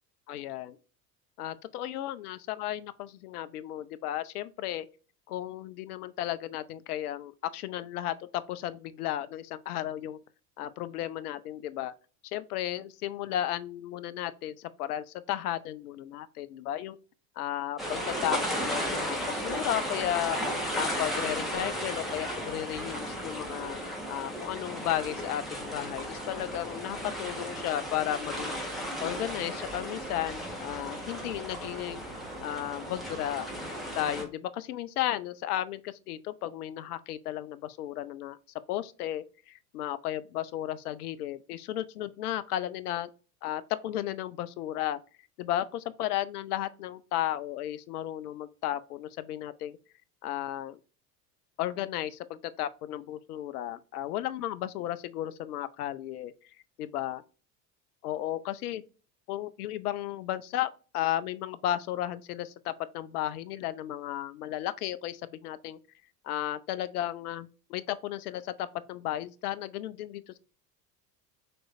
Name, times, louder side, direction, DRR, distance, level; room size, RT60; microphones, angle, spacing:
voice 1, 0.3-0.8 1.4-4.9 5.3-10.2 10.6-11.9 12.3-17.0 17.4-20.4 20.7-28.5 29.0-32.0 32.4-33.5 33.9-38.4 38.7-43.1 43.4-45.0 45.4-49.8 50.2-50.8 51.6-56.3 56.8-57.2 58.0-58.8 59.3-65.8 66.2-70.4, left 13 dB, 65° left, 0.5 m, -34 dB
sound 1, 17.8-34.2, equal, ahead, 1.2 m, -35 dB
6.1 x 3.0 x 2.5 m
figure-of-eight pair, 70°, 49 cm